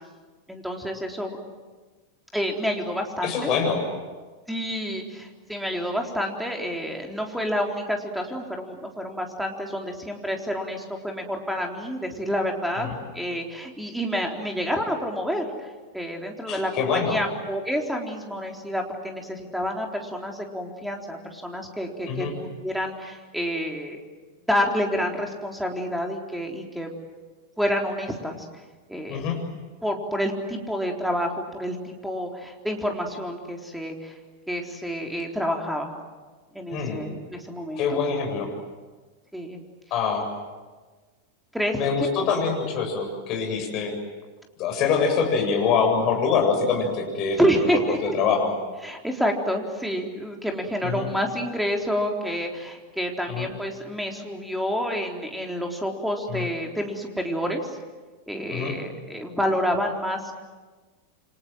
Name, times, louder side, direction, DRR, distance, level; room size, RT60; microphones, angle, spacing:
voice 1, 0.5-1.4 2.3-3.5 4.5-12.9 13.1-15.7 15.9-24.0 24.5-26.9 27.6-28.4 28.9-29.3 29.8-34.1 34.5-35.9 36.5-38.0 39.3-39.6 41.5-41.8 47.4-48.2 48.8-57.7 58.3-60.3, equal, ahead, 2 dB, 4.0 m, -28 dB
voice 2, 3.2-3.8 12.8-13.0 16.5-17.2 22.1-22.3 29.1-29.4 36.7-37.0 37.8-38.5 39.9-40.3 41.7-43.9 44.6-48.5 50.8-51.1 53.3-53.5 56.3-56.5 58.5-58.7, left 5 dB, 40° left, 3 dB, 7.5 m, -25 dB
29.0 x 25.5 x 7.7 m, 1.3 s
figure-of-eight pair, 90°, 0 cm